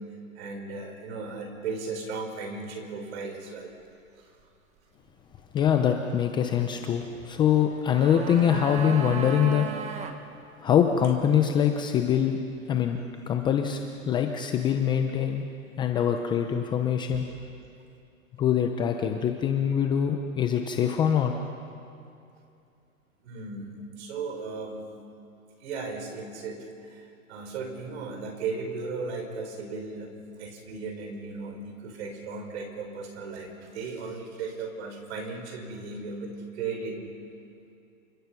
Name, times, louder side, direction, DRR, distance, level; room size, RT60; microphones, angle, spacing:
voice 1, 0.3-3.7 4.1-4.4 11.4-11.5 17.1-17.2 23.2-24.9 25.6-37.0, right 4 dB, 50° right, 4 dB, 5.5 m, -36 dB
voice 2, 5.5-9.7 10.6-12.4 12.7-15.4 15.8-17.3 18.4-21.3, left 8 dB, 10° left, 5 dB, 0.6 m, -24 dB
sound 1, 7.6-10.2 10.4-10.5, right 7 dB, 15° right, 1.3 m, -36 dB
28.5 x 25.0 x 6.0 m, 2.6 s
hypercardioid pair, 145°, 42 cm